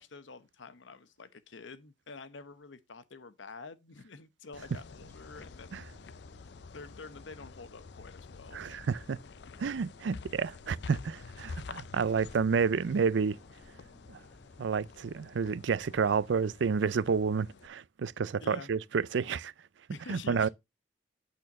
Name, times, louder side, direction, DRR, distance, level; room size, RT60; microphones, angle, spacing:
voice 1, 0.0-5.8 6.7-8.6 18.4-18.7 19.9-20.5, left 4 dB, 85° left, 0.8 m, -48 dB
sound 1, 4.5-17.7, left 4 dB, 65° left, 0.5 m, -49 dB
sound 2, 5.1-16.4, left 1 dB, 10° left, 0.9 m, -61 dB
voice 2, 8.5-9.2 9.6-13.4 14.1-14.2 14.6-19.5 20.1-20.5, right 5 dB, 80° right, 0.4 m, -30 dB
8.6 x 4.4 x 5.1 m
head